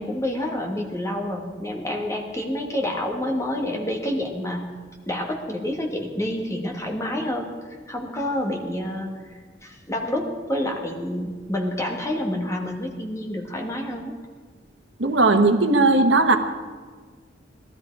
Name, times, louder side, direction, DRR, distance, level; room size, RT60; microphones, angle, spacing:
voice 1, 0.0-4.7 5.1-7.5 7.9-9.2 9.6-14.1, left 1 dB, 15° left, 0 dB, 2.0 m, -28 dB
voice 2, 15.0-16.4, right 2 dB, 70° right, 6 dB, 1.2 m, -17 dB
18.5 x 13.0 x 4.8 m, 1.5 s
head